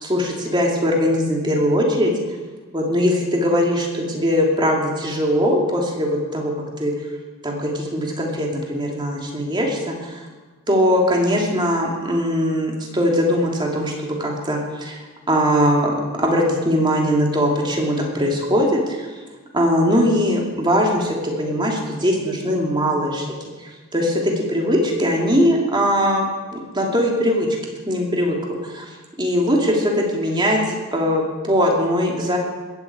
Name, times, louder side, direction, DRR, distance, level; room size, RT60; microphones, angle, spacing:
voice 1, 0.0-2.1 2.7-6.5 6.8-6.9 7.4-10.2 10.7-15.0 15.3-19.1 19.5-26.2 26.5-27.5 27.9-32.4, equal, 20° right, -1 dB, 3.0 m, -20 dB
21.0 x 8.2 x 8.3 m, 1.3 s
head